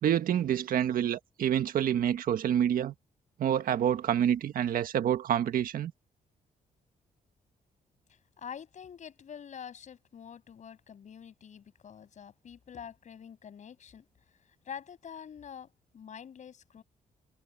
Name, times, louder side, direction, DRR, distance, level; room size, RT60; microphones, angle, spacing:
voice 1, 0.0-2.9 3.4-5.9, right 10 dB, 75° right, 1.6 m, -27 dB
voice 2, 8.1-14.1 14.5-16.8, left 8 dB, 55° left, 7.4 m, -46 dB
cardioid pair, 125°, 15 cm